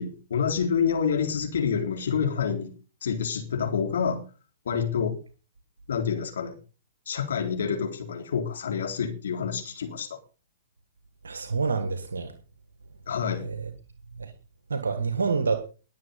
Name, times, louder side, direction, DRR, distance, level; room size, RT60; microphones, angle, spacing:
voice 1, 0.0-2.7 3.0-4.2 4.7-5.2 5.9-6.5 7.1-10.2 13.1-13.5, left 6 dB, 65° left, 3.8 m, -27 dB
voice 2, 11.2-12.3 13.4-13.6 14.2-14.3 14.7-15.6, right 5 dB, 75° right, 1.7 m, -27 dB
21.0 x 7.5 x 5.4 m
figure-of-eight pair, 115°, 0 cm